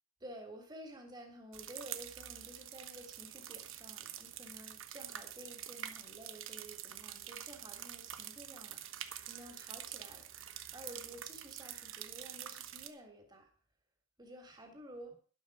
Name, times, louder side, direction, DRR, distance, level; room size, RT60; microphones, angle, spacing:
voice 1, 0.2-13.5 14.2-15.1, right 1 dB, 20° right, 3 dB, 3.5 m, -52 dB
sound 1, 1.5-12.9, right 11 dB, 75° right, 1.2 m, -46 dB
12.0 x 12.0 x 5.0 m, 0.39 s
head